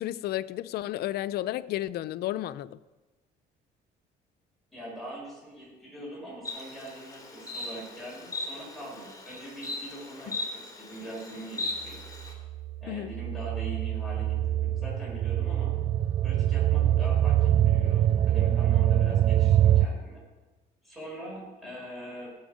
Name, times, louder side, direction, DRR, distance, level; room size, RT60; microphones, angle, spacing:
voice 1, 0.0-2.8 10.3-10.4 12.9-13.1, left 14 dB, 70° left, 0.5 m, -32 dB
voice 2, 4.7-12.0 12.8-15.7 16.2-20.2 20.8-22.3, right 1 dB, ahead, 5.5 m, -42 dB
Insect, 6.4-12.3, left 2 dB, 20° left, 2.8 m, -38 dB
sound 1, 12.2-19.9, right 12 dB, 40° right, 0.4 m, -24 dB
18.5 x 7.8 x 5.1 m
cardioid pair, 110°, 17 cm